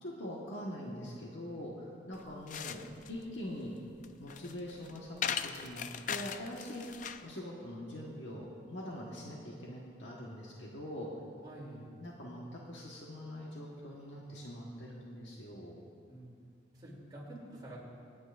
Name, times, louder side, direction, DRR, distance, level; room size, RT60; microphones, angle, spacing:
voice 1, 0.0-2.8 3.1-3.7 4.2-6.8 7.2-11.1 12.0-15.8, left 1 dB, 70° left, -4 dB, 1.4 m, -43 dB
sound 1, 2.1-7.3, left 7 dB, 40° left, 0.4 m, -40 dB
voice 2, 11.4-11.9 16.1-16.3 16.7-17.8, right 1 dB, 20° right, -5 dB, 2.9 m, -48 dB
27.5 x 9.4 x 2.6 m, 2.4 s
head